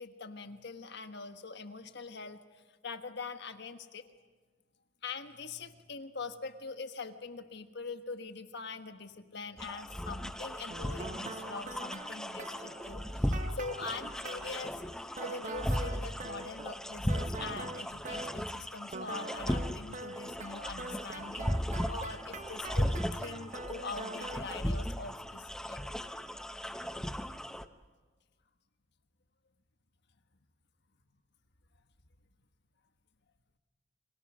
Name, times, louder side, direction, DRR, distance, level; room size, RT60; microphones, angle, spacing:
voice 1, 0.0-4.1 5.0-14.8 15.2-25.8, left 4 dB, 60° left, 8 dB, 1.4 m, -43 dB
sound 1, 9.6-27.7, equal, 5° left, 0.8 m, -37 dB
sound 2, 10.7-14.6 15.1-18.6 18.9-24.6, right 3 dB, 40° right, 1.2 m, -44 dB
29.5 x 25.5 x 6.3 m, 1.3 s
head